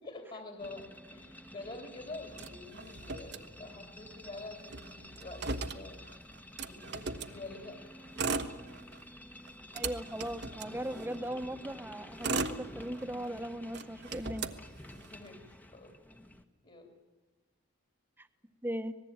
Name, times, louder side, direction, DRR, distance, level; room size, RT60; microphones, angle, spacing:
voice 1, 0.0-6.0 6.6-7.8 15.1-15.9 16.6-16.9, left 2 dB, 40° left, 3 dB, 3.0 m, -47 dB
sound 1, 0.6-16.4, left 1 dB, 10° left, 1.2 m, -50 dB
Motor vehicle (road), 2.3-4.0 4.3-4.4 4.6-7.4 8.0-9.1 9.5-11.3 11.9-13.3 13.7-15.3, right 3 dB, 60° right, 1.3 m, -38 dB
voice 2, 9.7-14.5 18.2-18.3 18.6-18.9, right 1 dB, 10° right, 9 dB, 1.2 m, -38 dB
26.0 x 19.5 x 8.9 m, 1.2 s
head